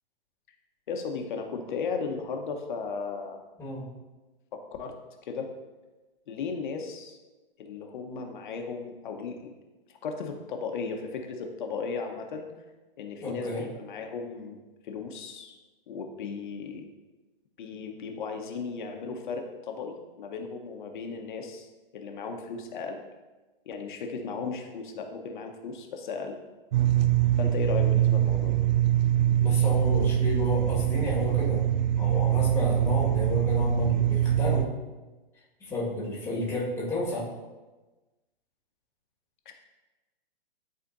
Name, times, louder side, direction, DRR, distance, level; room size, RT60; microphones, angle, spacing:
voice 1, 0.9-3.4 4.5-5.0 5.2-5.5 6.3-7.2 7.6-9.4 10.0-12.5 13.0-15.6 15.9-16.9 17.6-21.7 21.9-23.0 23.7-26.4 27.4-28.6 32.6-32.8 39.5-39.6, left 5 dB, 55° left, 4 dB, 1.0 m, -36 dB
voice 2, 13.2-13.6 29.4-31.7 32.0-34.7 35.6-37.3, left 2 dB, 10° left, -5 dB, 1.7 m, -31 dB
sound 1, 26.7-34.7, right 11 dB, 50° right, 0.4 m, -24 dB
11.5 x 4.2 x 2.6 m, 1.2 s
hypercardioid pair, 140°, 29 cm